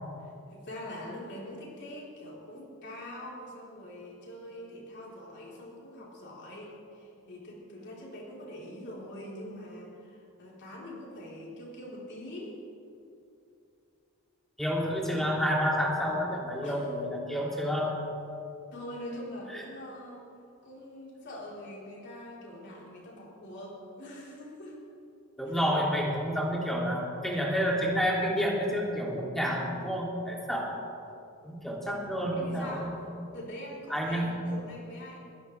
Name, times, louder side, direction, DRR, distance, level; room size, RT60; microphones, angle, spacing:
voice 1, 0.2-12.6 16.6-16.8 18.7-20.2 20.6-24.8 25.4-25.6 32.3-33.0 33.3-35.2, left 1 dB, 55° left, -4 dB, 4.0 m, -43 dB
voice 2, 14.6-17.9 19.5-19.6 25.4-30.7 31.4-32.9 33.9-34.3, equal, ahead, -3 dB, 2.8 m, -29 dB
21.5 x 16.0 x 3.4 m, 2.6 s
head